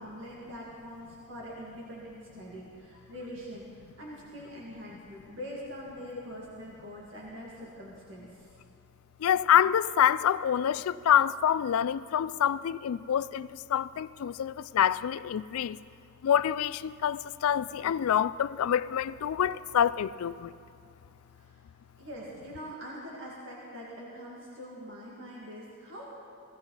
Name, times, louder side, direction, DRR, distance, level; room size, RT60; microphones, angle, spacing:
voice 1, 0.0-8.5 21.4-21.5 22.0-26.0, equal, 55° right, 2.1 m, -43 dB
voice 2, 9.2-15.8 16.2-20.5, left 9 dB, 75° left, 0.3 m, -26 dB
17.0 x 16.0 x 4.0 m
head